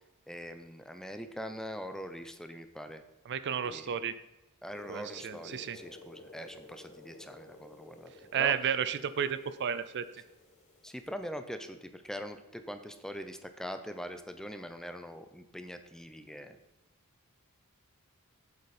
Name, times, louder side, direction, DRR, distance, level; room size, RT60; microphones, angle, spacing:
voice 1, 0.3-3.0 3.7-4.0 4.6-8.6 10.8-16.6, equal, ahead, 8 dB, 0.6 m, -42 dB
voice 2, 3.3-4.1 4.9-5.8 8.3-10.0, right 8 dB, 50° right, 14 dB, 0.4 m, -32 dB
sound 1, 4.7-11.1, left 2 dB, 35° left, 1.8 m, -53 dB
8.2 x 8.2 x 4.2 m, 0.98 s
head